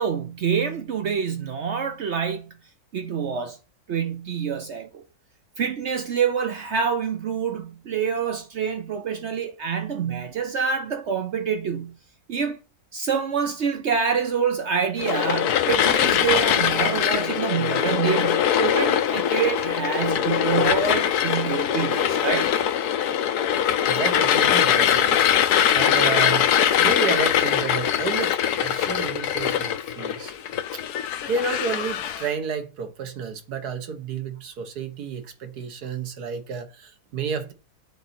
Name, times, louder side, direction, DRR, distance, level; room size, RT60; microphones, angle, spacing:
voice 1, 0.0-2.5 2.9-3.6 3.9-5.0 5.6-11.9 12.3-12.6 12.9-22.5, right 7 dB, 60° right, 0.8 m, -26 dB
sound 1, 15.0-32.3, left 9 dB, 80° left, 1.2 m, -22 dB
voice 2, 23.9-25.2 25.7-26.5 26.8-30.3 30.7-30.8 31.3-37.5, right 5 dB, 90° right, 1.6 m, -31 dB
9.3 x 4.1 x 4.3 m
omnidirectional pair, 1.6 m